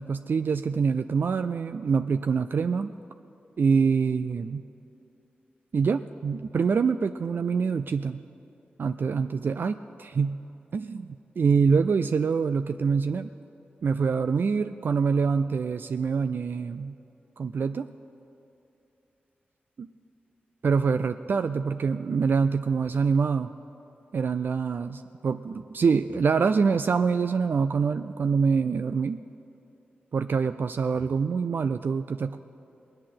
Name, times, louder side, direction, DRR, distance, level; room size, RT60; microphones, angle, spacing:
voice 1, 0.0-2.9 3.6-4.6 5.7-8.2 8.8-10.4 10.7-13.3 13.8-16.9 17.4-17.9 19.8-19.9 20.6-23.5 24.1-29.2 30.1-32.4, right 5 dB, 65° right, 9 dB, 0.4 m, -25 dB
19.5 x 8.6 x 7.7 m, 2.8 s
cardioid pair, 60°, 4 cm